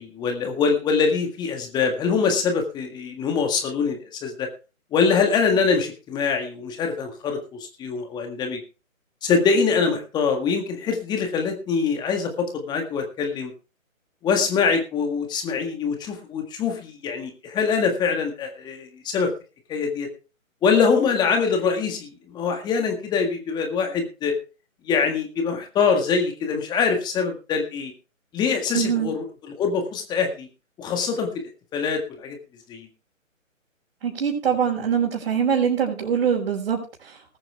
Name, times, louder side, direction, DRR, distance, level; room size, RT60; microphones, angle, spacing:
voice 1, 0.0-4.5 4.9-8.6 9.2-13.5 14.2-19.3 19.7-20.1 20.6-24.3 24.9-27.9 28.3-30.5 30.8-31.3 31.7-32.4 32.7-32.9, left 5 dB, 10° left, 4 dB, 1.8 m, -24 dB
voice 2, 28.7-29.1 34.0-36.8, right 7 dB, 45° right, -4 dB, 5.5 m, -23 dB
20.0 x 8.9 x 3.4 m, 0.32 s
figure-of-eight pair, 145°, 41 cm